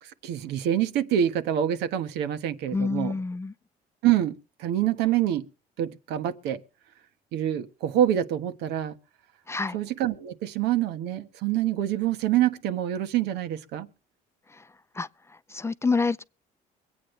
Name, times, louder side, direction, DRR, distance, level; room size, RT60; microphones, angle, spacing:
voice 1, 0.0-3.2 4.0-5.5 5.8-6.6 7.3-8.9 9.7-13.9, right 11 dB, 90° right, 1.4 m, -26 dB
voice 2, 2.7-3.5 9.5-9.8 15.0-15.1 15.5-16.2, left 4 dB, 15° left, 0.5 m, -27 dB
24.0 x 8.7 x 3.3 m
cardioid pair, 110°, 17 cm